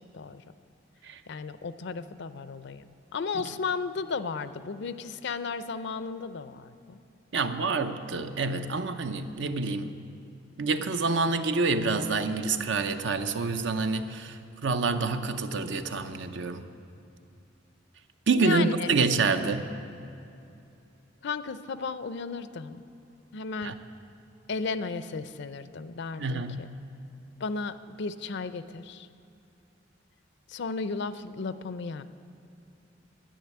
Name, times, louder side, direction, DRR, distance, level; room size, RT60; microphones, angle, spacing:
voice 1, 1.3-7.0 18.3-18.9 21.2-22.8 23.3-23.7 24.5-26.7 27.4-29.1 30.5-32.0, left 4 dB, 65° left, 13 dB, 0.5 m, -34 dB
voice 2, 7.3-10.0 10.6-16.6 18.3-19.7 23.6-23.7 26.2-26.6, right 4 dB, 70° right, 9 dB, 0.7 m, -27 dB
10.0 x 8.2 x 9.5 m, 2.7 s
head